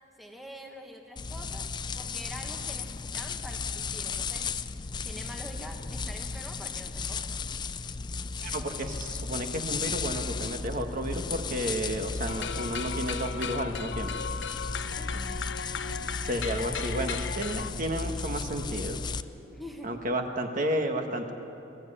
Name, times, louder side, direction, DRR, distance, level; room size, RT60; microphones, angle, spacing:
voice 1, 0.2-1.7 1.9-4.5 5.0-7.4 15.0-15.4 19.5-20.0, equal, ahead, 2 dB, 1.3 m, -45 dB
sound 1, 1.2-19.2, left 4 dB, 20° left, 0.4 m, -35 dB
voice 2, 8.4-14.1 16.2-19.0 19.8-21.3, right 1 dB, 40° right, 4 dB, 1.5 m, -32 dB
sound 2, 12.3-17.7, left 6 dB, 60° left, 0.6 m, -36 dB
21.5 x 14.5 x 9.9 m, 2.8 s
head